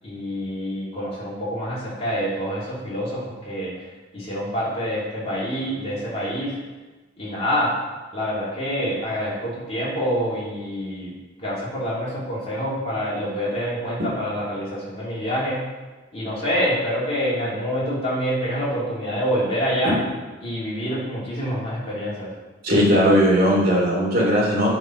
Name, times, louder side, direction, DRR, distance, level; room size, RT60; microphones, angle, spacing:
voice 1, 0.0-3.7 4.1-6.6 7.2-7.7 8.1-11.1 11.4-15.6 16.1-20.0 20.4-22.3, equal, 35° left, -8 dB, 3.1 m, -26 dB
voice 2, 22.6-24.7, equal, 50° right, -4 dB, 2.8 m, -18 dB
8.1 x 6.1 x 5.2 m, 1.2 s
head